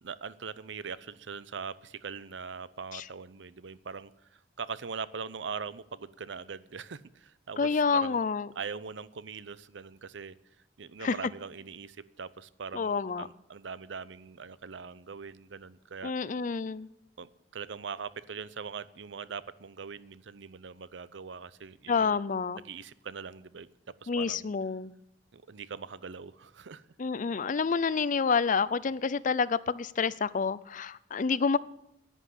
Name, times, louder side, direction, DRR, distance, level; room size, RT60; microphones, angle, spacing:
voice 1, 0.0-8.2 8.6-10.3 10.8-16.1 17.2-22.2 22.5-24.5 25.3-26.8, right 5 dB, 80° right, 0.6 m, -41 dB
voice 2, 7.6-8.5 11.0-11.1 12.7-13.3 16.0-16.9 21.9-22.6 24.1-24.9 27.0-31.6, left 5 dB, 45° left, 0.5 m, -28 dB
11.0 x 10.0 x 8.3 m
head